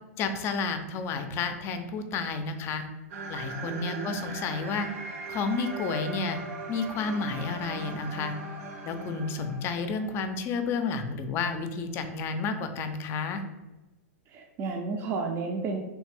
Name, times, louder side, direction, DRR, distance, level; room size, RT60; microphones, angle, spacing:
voice 1, 0.2-2.8 3.3-4.9 5.3-6.4 6.7-8.3 8.8-13.4, left 4 dB, 30° left, 8 dB, 0.4 m, -31 dB
sound 1, 3.1-10.2, right 3 dB, 70° right, 0.7 m, -39 dB
voice 2, 3.6-4.3 14.3-15.8, right 4 dB, 35° right, 1 dB, 0.4 m, -32 dB
3.2 x 2.5 x 3.3 m, 1.1 s
hypercardioid pair, 130°, 8 cm